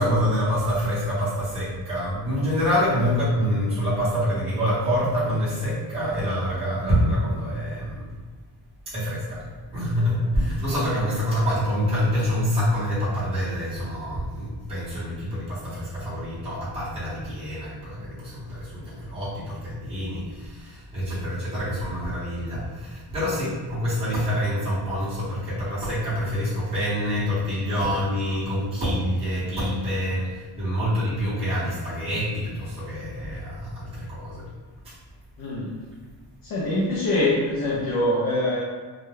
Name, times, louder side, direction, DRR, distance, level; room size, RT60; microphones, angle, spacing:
voice 1, 0.0-8.1 8.9-9.4 9.7-34.4 34.8-34.9, equal, 15° right, -12 dB, 0.8 m, -26 dB
voice 2, 35.4-35.8 36.4-38.6, left 1 dB, 55° left, -5 dB, 0.5 m, -24 dB
2.3 x 2.1 x 3.0 m, 1.4 s
wide cardioid pair, 175°, 42 cm